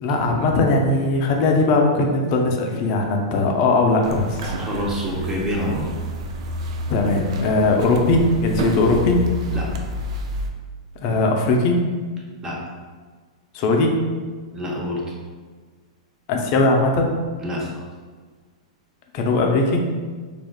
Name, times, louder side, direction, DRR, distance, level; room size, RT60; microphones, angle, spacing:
voice 1, 0.0-4.5 6.9-9.2 11.0-11.8 13.5-14.0 16.3-17.1 19.1-19.8, left 2 dB, 45° left, 2 dB, 0.5 m, -19 dB
sound 1, 4.0-10.5, equal, 60° right, 0.4 m, -29 dB
voice 2, 4.6-5.9 9.5-9.7 12.4-12.6 14.5-15.1 17.4-17.9, left 1 dB, 15° right, -3 dB, 0.6 m, -27 dB
3.4 x 2.4 x 2.2 m, 1.5 s
hypercardioid pair, 130°, 4 cm